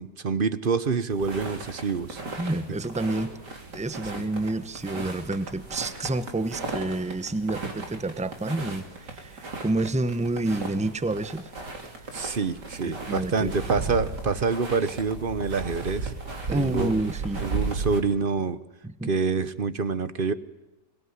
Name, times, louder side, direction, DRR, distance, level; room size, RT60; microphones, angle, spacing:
voice 1, 0.0-2.2 4.1-4.2 12.1-16.1 16.6-16.9 17.4-18.6 19.1-20.3, right 5 dB, 40° right, 14 dB, 0.9 m, -27 dB
sound 1, 1.1-18.0, right 3 dB, 70° right, 3.9 m, -36 dB
voice 2, 2.4-3.3 3.7-11.5 12.8-13.5 16.5-17.4 18.8-19.1, right 2 dB, 5° right, 13 dB, 0.6 m, -29 dB
24.0 x 21.0 x 9.7 m, 1.0 s
omnidirectional pair, 1.9 m